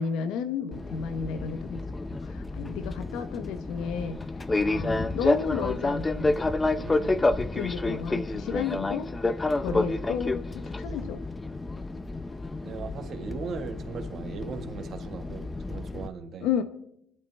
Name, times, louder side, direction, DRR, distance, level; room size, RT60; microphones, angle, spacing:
voice 1, 0.0-4.2 4.7-6.3 7.5-9.1 9.6-11.2 16.4-16.6, left 7 dB, 80° left, 9 dB, 1.1 m, -32 dB
Fixed-wing aircraft airplane, 0.7-16.1, left 2 dB, 15° left, 0.6 m, -29 dB
voice 2, 6.8-7.3 9.6-9.8 12.6-16.5, right 5 dB, 45° right, 6 dB, 1.6 m, -39 dB
27.0 x 12.0 x 3.4 m, 0.76 s
cardioid pair, 135°, 0 cm